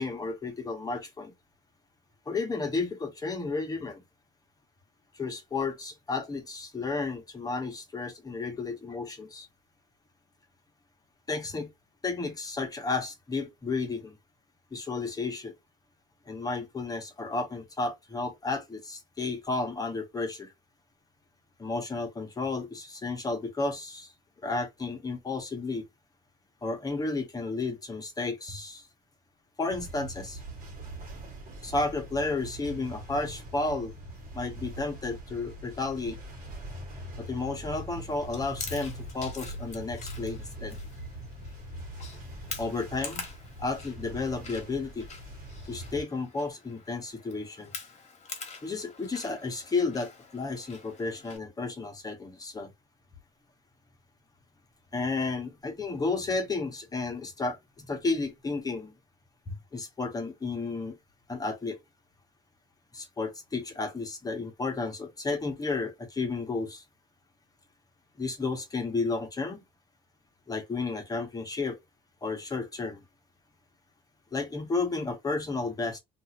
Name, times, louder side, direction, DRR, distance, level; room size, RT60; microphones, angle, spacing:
voice 1, 0.0-1.3 2.3-4.0 5.2-9.5 11.3-11.7 12.0-14.2 14.7-15.5 16.3-20.5 21.6-24.1 24.4-25.8 26.6-28.8 29.6-30.4 31.6-33.9 34.3-36.2 37.2-40.8 42.6-43.2 43.6-45.1 45.7-47.7 48.6-52.7 54.9-58.9 59.5-60.9 61.3-61.8 62.9-66.8 68.2-69.6 70.5-71.8 72.2-73.0 74.3-76.0, left 3 dB, 20° left, 1.0 m, -32 dB
sound 1, 29.7-46.0, right 1 dB, 55° right, 1.3 m, -42 dB
Chewing mastication, 38.3-51.4, left 5 dB, 45° left, 1.2 m, -45 dB
2.6 x 2.5 x 2.8 m
cardioid pair, 110°, 17 cm